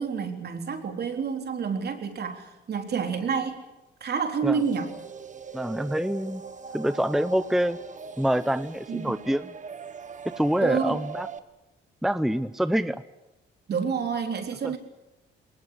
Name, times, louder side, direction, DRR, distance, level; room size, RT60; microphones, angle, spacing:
voice 1, 0.0-3.6 4.0-4.9 8.9-9.2 10.6-11.0 13.7-14.8, right 6 dB, 55° right, 5 dB, 3.8 m, -29 dB
sound 1, 4.5-11.4, right 6 dB, 40° right, 1.5 m, -41 dB
voice 2, 5.5-6.4 6.7-7.8 8.2-9.5 10.2-11.3 12.0-13.0 14.6-14.8, equal, ahead, 13 dB, 0.8 m, -26 dB
21.0 x 20.0 x 9.9 m, 0.99 s
cardioid pair, 90°, 20 cm